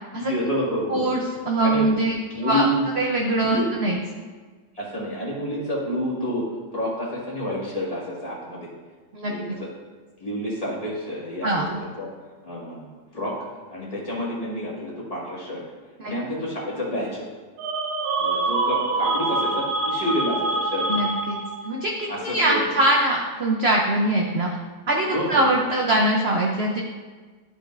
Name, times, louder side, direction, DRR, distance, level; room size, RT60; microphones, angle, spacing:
voice 1, 0.1-1.2 1.6-2.9 3.4-3.7 4.7-6.4 6.7-8.7 9.3-9.7 10.2-12.1 12.4-13.3 13.7-15.6 16.0-17.4 18.2-21.0 22.1-22.7 25.0-25.4, equal, 20° left, -7 dB, 1.8 m, -29 dB
voice 2, 0.9-2.1 2.4-2.6 3.0-4.0 9.1-9.3 11.4-11.8 16.0-16.1 20.9-21.4 21.6-24.5 24.9-26.8, right 1 dB, 60° right, 0 dB, 0.6 m, -22 dB
sound 1, 17.6-21.7, right 2 dB, 85° right, 1.5 m, -25 dB
11.5 x 5.2 x 2.5 m, 1.4 s
omnidirectional pair, 1.9 m